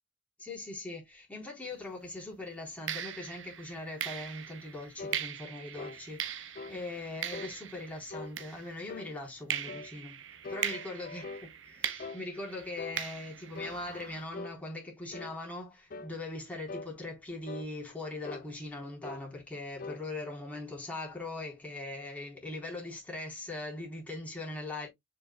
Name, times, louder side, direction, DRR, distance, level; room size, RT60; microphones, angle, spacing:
voice 1, 0.4-11.3 11.6-24.9, left 2 dB, 10° left, 4.0 m, -41 dB
sound 1, 1.7-1.9 2.9-9.0 9.5-14.2, right 9 dB, 75° right, 0.8 m, -40 dB
sound 2, 5.0-5.2 5.8-6.0 6.6-6.8 7.3-7.6 8.1-8.4 8.9-9.2 9.7-9.9 10.4-11.5 12.0-12.2 12.8-13.0 13.6-13.8 14.3-14.6 15.1-15.4 15.9-16.1 16.7-16.9 17.5-17.7 18.2-18.5 19.0-19.3 19.8-20.0, left 3 dB, 45° left, 0.5 m, -42 dB
7.2 x 6.0 x 2.3 m
head